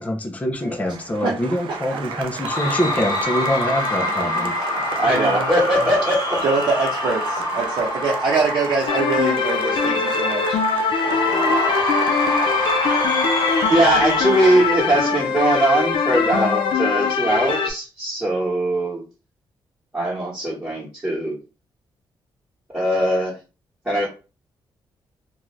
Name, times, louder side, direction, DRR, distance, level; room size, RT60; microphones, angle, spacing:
voice 1, 0.0-4.5, equal, 15° left, 3 dB, 0.5 m, -24 dB
Applause, 0.6-15.4, right 7 dB, 90° right, 0.4 m, -34 dB
voice 2, 1.9-2.2 4.2-4.5 5.0-5.5 5.8-5.9 6.4-10.4, right 4 dB, 60° right, -4 dB, 0.7 m, -24 dB
Cheering / Crowd, 2.4-9.7 11.0-15.7, left 1 dB, 50° left, 1.2 m, -26 dB
voice 3, 4.9-6.4 11.4-11.5 13.7-19.0 19.9-21.4 22.7-23.4 23.8-24.1, right 1 dB, 15° right, -7 dB, 1.2 m, -20 dB
sound 1, 8.9-17.7, left 5 dB, 75° left, 0.4 m, -22 dB
2.5 x 2.3 x 3.1 m, 0.31 s
cardioid pair, 100°, 9 cm